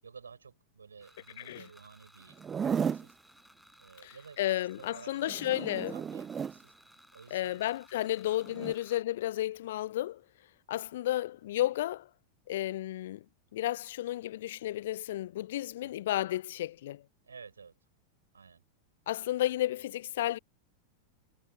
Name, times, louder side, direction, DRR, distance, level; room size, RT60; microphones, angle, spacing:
voice 1, 0.0-3.2 3.8-6.7 7.1-7.7 8.0-8.2 8.6-8.7 15.8-15.9 17.2-17.8 18.3-18.6, right 5 dB, 75° right, 7.4 m, -53 dB
sound 1, 1.0-9.0, equal, ahead, 4.9 m, -60 dB
Zipper (clothing), 2.3-3.1 5.3-6.6 8.5-8.7, right 7 dB, 20° right, 0.6 m, -34 dB
voice 2, 4.0-5.9 7.3-10.2 10.7-12.1 12.5-13.2 13.5-17.0 19.1-20.4, left 14 dB, 55° left, 0.4 m, -32 dB
figure-of-eight pair, 90°, 0 cm